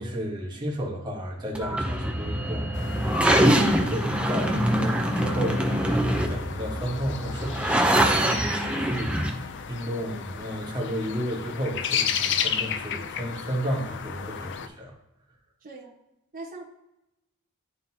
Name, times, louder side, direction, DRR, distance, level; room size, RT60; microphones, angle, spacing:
voice 1, 0.0-5.7 6.3-14.9, equal, 20° right, -2 dB, 1.4 m, -32 dB
sound 1, 1.5-9.3, right 1 dB, 5° right, 0.7 m, -24 dB
sound 2, 2.7-14.7, left 8 dB, 55° left, 0.5 m, -34 dB
voice 2, 15.6-15.9 16.3-16.6, right 3 dB, 40° right, -5 dB, 1.3 m, -40 dB
11.0 x 3.8 x 2.8 m, 0.90 s
head